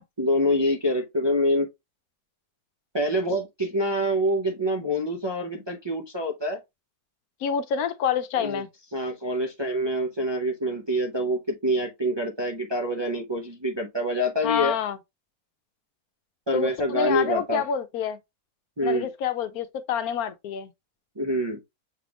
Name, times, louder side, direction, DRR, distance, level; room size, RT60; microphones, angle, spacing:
voice 1, 0.2-1.7 2.9-6.6 8.4-8.6 8.9-14.7 16.5-17.6 18.8-19.1 21.2-21.6, equal, 30° right, 0.5 m, -26 dB
voice 2, 7.4-8.7 14.4-15.0 16.5-18.2 18.8-20.7, left 7 dB, 85° left, 1.1 m, -27 dB
6.5 x 3.4 x 2.4 m
omnidirectional pair, 1.5 m